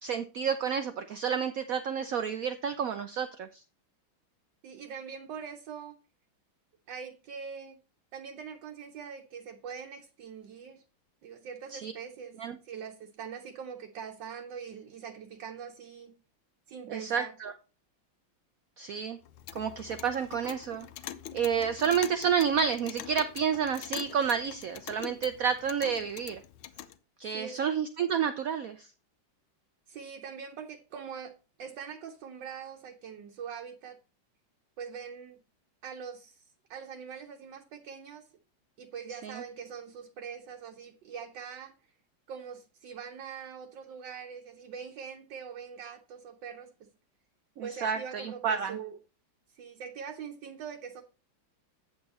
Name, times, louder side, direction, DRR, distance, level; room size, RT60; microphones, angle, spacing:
voice 1, 0.0-3.6 11.7-11.9 12.4-12.6 16.9-17.5 18.8-19.2 19.5-20.9 21.3-26.4 27.2-28.9 39.2-39.4 47.6-48.8, right 7 dB, 90° right, 0.7 m, -30 dB
voice 2, 4.6-6.0 6.9-7.8 8.1-10.8 11.2-12.4 12.6-16.1 16.7-17.3 27.3-27.6 29.9-31.3 31.6-34.0 34.8-35.4 35.8-36.4 36.7-38.3 38.8-41.7 42.3-46.9 47.6-49.0 49.5-51.0, right 7 dB, 65° right, 1.4 m, -43 dB
Clock, 19.2-27.0, left 11 dB, 85° left, 1.5 m, -44 dB
8.6 x 7.1 x 4.2 m
omnidirectional pair, 2.2 m